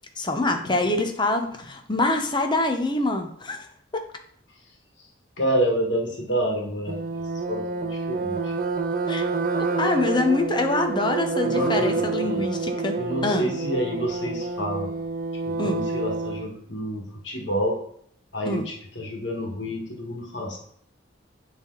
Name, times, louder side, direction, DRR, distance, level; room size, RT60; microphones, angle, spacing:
voice 1, 0.2-3.7 3.9-4.0 9.1-9.2 9.6-13.0 13.2-13.5 15.6-15.8 18.4-18.7, left 2 dB, 25° left, 5 dB, 0.8 m, -25 dB
voice 2, 5.4-7.0 7.5-8.5 11.4-12.4 13.0-14.9 15.4-17.8 18.3-20.6, equal, 75° left, 0 dB, 1.6 m, -28 dB
sound 1, 6.9-16.5, right 4 dB, 45° right, 0.5 m, -28 dB
9.0 x 3.5 x 3.9 m, 0.64 s
head